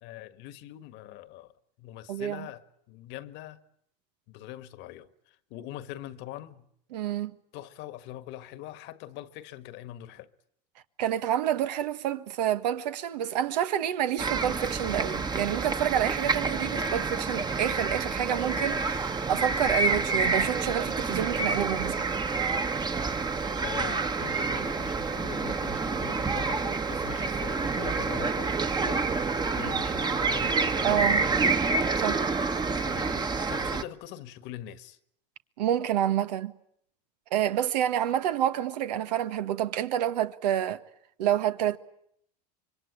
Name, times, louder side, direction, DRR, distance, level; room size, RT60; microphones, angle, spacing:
voice 1, 0.0-1.5 1.8-3.6 4.3-6.7 7.5-10.3 23.6-31.5 32.8-35.0, left 13 dB, 60° left, 1.6 m, -43 dB
voice 2, 2.1-2.5 6.9-7.3 11.0-22.1 30.8-31.2 32.0-32.2 35.6-36.5 37.3-40.8 41.2-41.8, right 11 dB, 85° right, 1.5 m, -28 dB
sound 1, 14.2-33.8, right 4 dB, 20° right, 1.3 m, -28 dB
26.0 x 23.5 x 9.9 m
supercardioid pair, 105°, 21 cm